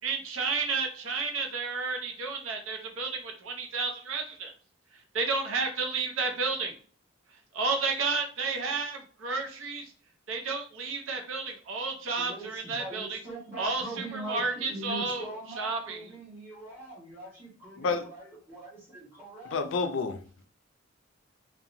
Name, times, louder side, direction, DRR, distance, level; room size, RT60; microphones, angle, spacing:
voice 1, 0.0-4.5 5.1-6.7 7.5-9.8 10.3-13.2 13.6-15.3 15.6-16.0, right 4 dB, 90° right, 3 dB, 0.6 m, -31 dB
voice 2, 12.1-19.6, right 2 dB, 10° right, -6 dB, 1.3 m, -42 dB
voice 3, 19.5-20.2, left 4 dB, 70° left, 7 dB, 0.4 m, -29 dB
2.7 x 2.2 x 2.6 m, 0.42 s
head